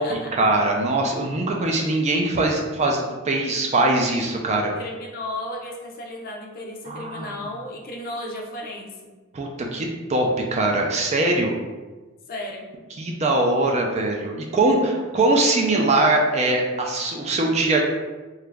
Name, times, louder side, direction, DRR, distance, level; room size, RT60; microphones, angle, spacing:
voice 1, 0.0-4.7 6.9-7.4 9.3-11.5 13.0-17.8, right 2 dB, 30° right, 1 dB, 0.4 m, -22 dB
voice 2, 4.6-9.1 12.3-12.7, left 1 dB, 45° left, 0 dB, 0.5 m, -34 dB
2.9 x 2.4 x 3.3 m, 1.2 s
head